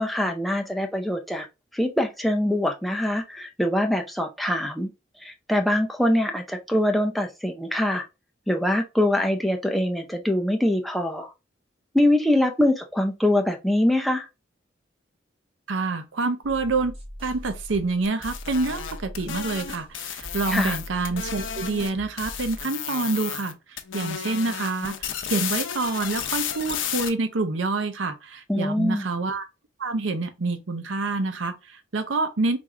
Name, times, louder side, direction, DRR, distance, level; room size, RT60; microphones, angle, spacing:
voice 1, 0.0-1.5 1.7-4.9 5.2-8.0 8.5-11.3 11.9-14.3 20.5-20.8 28.5-29.0, left 1 dB, ahead, 0.5 m, -23 dB
voice 2, 15.7-16.9 17.2-23.6 23.9-29.4 29.8-32.6, right 3 dB, 85° right, 0.7 m, -27 dB
sound 1, 16.4-22.6, equal, 30° right, 1.6 m, -41 dB
sound 2, 18.0-21.9 22.2-23.5 23.8-27.1, left 8 dB, 90° left, 0.6 m, -32 dB
4.4 x 2.5 x 3.7 m
head